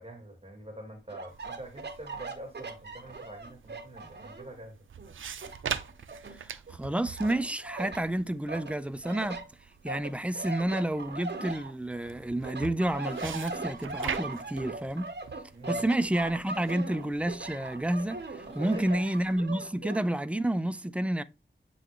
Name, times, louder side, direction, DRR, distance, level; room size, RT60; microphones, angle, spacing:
voice 1, 0.0-4.8 15.5-15.9 18.5-19.0, right 1 dB, 30° right, 1.7 m, -45 dB
sound 1, 1.1-4.5 5.0-6.8 7.2-8.0 8.5-12.1 12.4-20.0, right 3 dB, 60° right, 1.5 m, -40 dB
sound 2, 1.3-19.0, right 7 dB, 85° right, 0.5 m, -44 dB
voice 2, 6.3-9.4 9.8-15.1 15.7-21.2, right 1 dB, 5° right, 0.5 m, -30 dB
7.8 x 3.9 x 3.1 m
wide cardioid pair, 75°, 20 cm